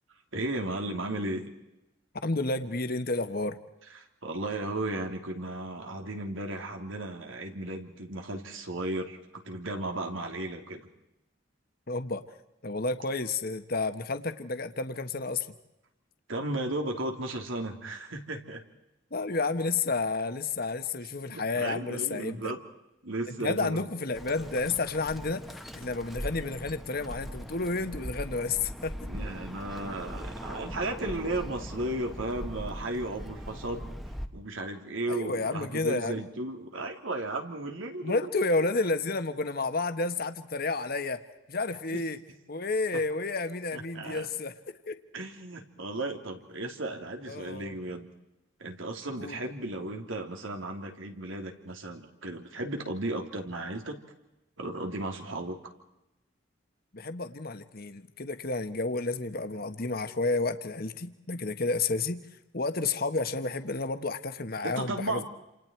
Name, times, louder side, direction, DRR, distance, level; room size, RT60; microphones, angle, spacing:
voice 1, 0.3-1.5 4.2-10.9 16.3-18.6 21.3-22.6 23.0-23.9 29.1-34.0 34.3-38.3 41.9-42.0 42.9-43.0 43.7-44.3 45.1-48.1 48.6-54.0 54.6-55.6 64.6-65.2, right 2 dB, 90° right, 4 dB, 3.3 m, -35 dB
voice 2, 2.2-3.6 11.9-12.3 12.6-15.5 19.1-22.5 23.3-25.4 25.7-28.9 35.1-36.2 38.0-41.2 41.5-42.2 42.5-44.6 44.9-45.0 47.3-47.7 49.2-49.4 56.9-62.2 62.5-65.2, left 3 dB, 50° left, 9 dB, 1.4 m, -31 dB
Bird, 24.1-34.3, equal, ahead, 1.2 m, -40 dB
29.5 x 27.5 x 4.6 m, 0.92 s
head